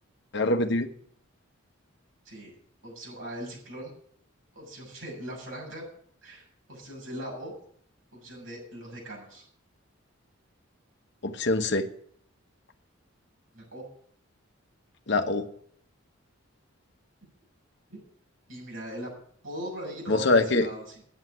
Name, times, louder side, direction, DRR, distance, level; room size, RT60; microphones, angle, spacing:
voice 1, 0.3-0.9 11.2-11.9 15.1-15.5 20.1-20.7, left 2 dB, 60° left, 7 dB, 1.1 m, -24 dB
voice 2, 2.8-4.0 4.5-5.8 6.2-7.5 8.1-9.4 13.5-13.8 17.9-18.0 18.5-19.1 19.4-21.0, equal, 75° right, -3 dB, 7.0 m, -39 dB
9.1 x 8.0 x 9.3 m, 0.63 s
head